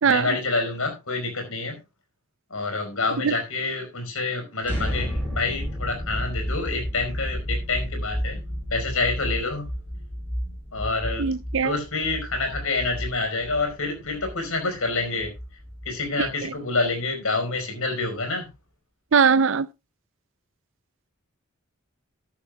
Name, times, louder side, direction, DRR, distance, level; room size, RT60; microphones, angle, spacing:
voice 1, 0.0-1.8 2.5-8.4 8.7-9.7 10.7-11.2 11.6-15.3 15.8-18.5, left 3 dB, 75° left, 4.8 m, -27 dB
sound 1, 4.6-16.5, equal, 10° left, 4.6 m, -32 dB
voice 2, 11.2-11.8 16.2-16.5 19.1-19.7, right 6 dB, 60° right, 0.5 m, -21 dB
13.0 x 13.0 x 2.3 m
head